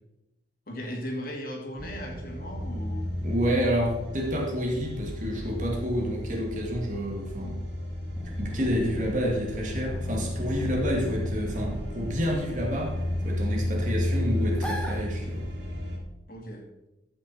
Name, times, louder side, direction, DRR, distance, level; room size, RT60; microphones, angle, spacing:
voice 1, 0.7-3.1 16.3-16.6, equal, 55° left, 1 dB, 2.2 m, -37 dB
sound 1, 1.8-16.0, left 1 dB, 75° right, 3.6 m, -33 dB
voice 2, 3.2-7.6 8.4-13.0 13.2-15.5, equal, 45° right, -1 dB, 2.3 m, -29 dB
sound 2, 8.1-15.6, equal, 5° left, 1.3 m, -38 dB
14.0 x 6.0 x 4.3 m, 0.95 s
head